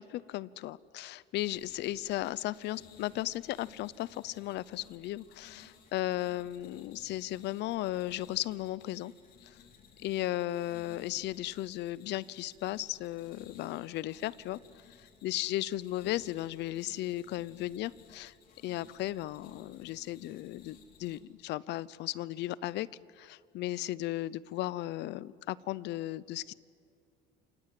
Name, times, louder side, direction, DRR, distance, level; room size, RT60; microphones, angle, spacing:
voice 1, 0.0-9.1 10.0-14.6 15.2-18.3 18.6-22.9 23.2-26.5, left 15 dB, 60° left, 20 dB, 0.7 m, -35 dB
sound 1, 1.3-21.2, left 6 dB, 45° left, 3.6 m, -58 dB
29.0 x 26.5 x 7.7 m, 2.3 s
cardioid pair, 160°, 20 cm